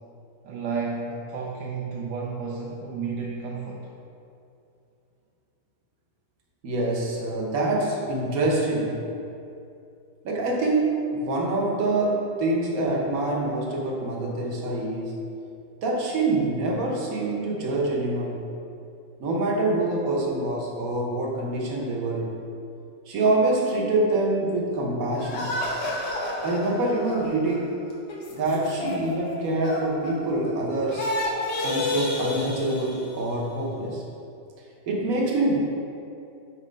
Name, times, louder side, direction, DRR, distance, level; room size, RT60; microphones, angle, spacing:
voice 1, 0.4-3.9, right 5 dB, 85° right, -3 dB, 1.3 m, -32 dB
voice 2, 6.6-9.0 10.2-15.2 15.8-18.4 19.2-22.4 23.1-25.5 26.4-27.8 28.3-31.1 31.6-34.0 34.9-35.6, right 2 dB, 60° right, -2 dB, 1.2 m, -25 dB
sound 1, 25.2-30.6 30.9-33.4, left 2 dB, 75° left, 1.5 m, -31 dB
4.3 x 4.3 x 5.1 m, 2.7 s
omnidirectional pair, 1.9 m